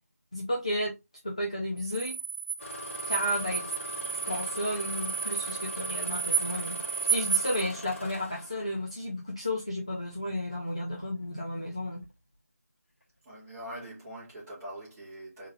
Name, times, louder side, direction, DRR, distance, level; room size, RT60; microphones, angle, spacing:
voice 1, 0.3-0.9 1.2-2.1 3.1-3.9 4.2-6.8 7.0-12.0, left 1 dB, 20° left, 0.4 m, -32 dB
sound 1, 1.8-7.6, right 6 dB, 30° right, 0.8 m, -32 dB
Engine starting, 2.6-9.0 10.0-10.3 10.9-11.3 11.9-12.1, left 2 dB, 50° left, 2.0 m, -42 dB
voice 2, 13.2-15.5, right 1 dB, 5° right, 1.2 m, -43 dB
3.6 x 3.1 x 2.9 m
figure-of-eight pair, 175°, 9 cm